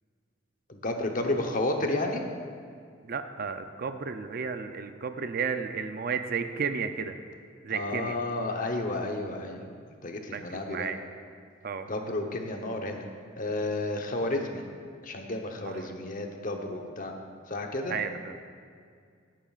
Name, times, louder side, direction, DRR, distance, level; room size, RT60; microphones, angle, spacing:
voice 1, 0.7-2.2 7.7-9.6 10.0-10.9 11.9-13.1 13.4-14.6 15.0-17.1 17.5-17.9, left 2 dB, 45° left, 3 dB, 0.9 m, -31 dB
voice 2, 3.0-7.2 7.6-8.2 10.3-11.0 11.6-11.9 15.6-15.9 17.9-18.3, right 5 dB, 50° right, 9 dB, 0.5 m, -33 dB
17.0 x 9.0 x 2.4 m, 2.2 s
head